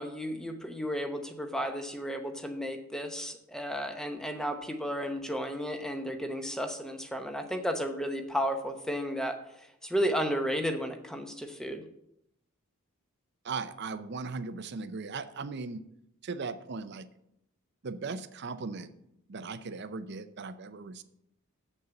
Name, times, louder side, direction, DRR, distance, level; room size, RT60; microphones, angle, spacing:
voice 1, 0.0-9.4 9.8-11.8, equal, 5° left, 6 dB, 0.8 m, -33 dB
voice 2, 13.4-15.8 16.2-17.1 17.8-18.9 19.3-21.0, right 4 dB, 55° right, 12 dB, 0.6 m, -38 dB
7.2 x 6.6 x 7.0 m, 0.78 s
head